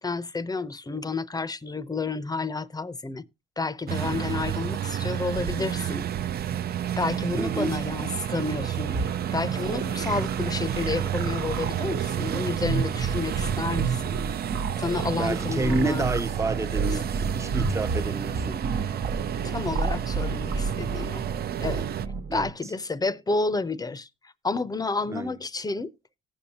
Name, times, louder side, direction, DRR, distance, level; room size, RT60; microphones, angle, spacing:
voice 1, 0.0-3.2 3.6-6.1 7.0-9.0 9.3-14.2 14.8-16.1 19.4-21.3 21.6-21.9 22.3-24.1 24.4-25.9, left 3 dB, 20° left, 0.7 m, -30 dB
sound 1, 3.9-22.1, right 10 dB, 50° right, 0.5 m, -30 dB
voice 2, 7.3-7.8 15.2-18.6 22.3-22.5 25.1-25.3, right 3 dB, 15° right, 0.7 m, -29 dB
sound 2, 8.9-22.5, right 4 dB, 70° right, 1.2 m, -32 dB
18.0 x 7.2 x 2.9 m
cardioid pair, 90°, 20 cm